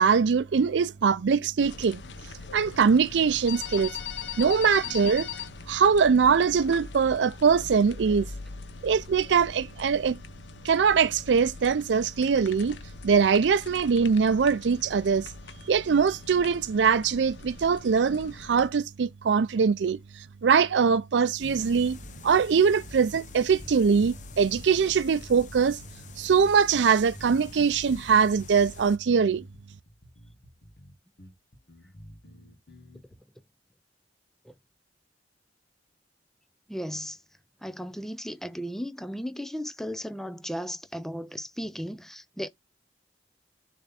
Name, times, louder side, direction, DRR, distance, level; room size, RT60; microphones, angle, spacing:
voice 1, 0.0-2.0 2.5-3.9 4.4-5.3 5.7-8.3 8.8-10.2 10.6-12.8 13.0-15.3 15.7-22.0 22.2-25.8 26.2-29.4, right 6 dB, 90° right, 0.4 m, -22 dB
sound 1, 1.6-18.7, left 6 dB, 85° left, 0.8 m, -41 dB
sound 2, 21.4-29.0, left 3 dB, 45° left, 0.8 m, -46 dB
sound 3, 23.5-33.1, equal, 65° left, 1.7 m, -52 dB
voice 2, 36.7-37.2 37.6-42.5, equal, ahead, 0.5 m, -35 dB
6.9 x 3.4 x 4.1 m
head